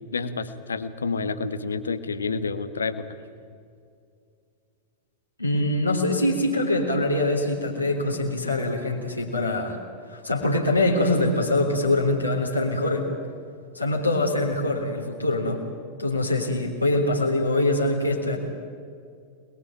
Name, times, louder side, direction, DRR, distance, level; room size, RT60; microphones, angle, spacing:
voice 1, 0.1-3.1, left 4 dB, 75° left, 10 dB, 1.6 m, -29 dB
voice 2, 5.4-9.8 10.1-13.1 13.7-15.6 16.0-18.4, left 2 dB, 90° left, -3 dB, 3.7 m, -24 dB
27.5 x 21.0 x 8.9 m, 2.3 s
figure-of-eight pair, 90°, 0 cm